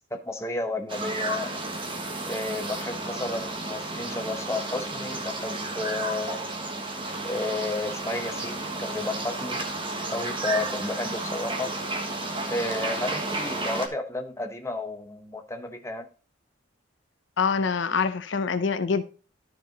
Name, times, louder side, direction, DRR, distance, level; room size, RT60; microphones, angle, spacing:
voice 1, 0.1-1.6 2.3-6.4 7.2-9.6 10.1-11.8 12.5-16.1, left 2 dB, 15° left, 0.9 m, -32 dB
sound 1, 0.9-13.9, right 2 dB, 25° right, 1.3 m, -32 dB
voice 2, 17.4-19.0, left 5 dB, 65° left, 0.6 m, -25 dB
12.5 x 4.7 x 4.0 m
head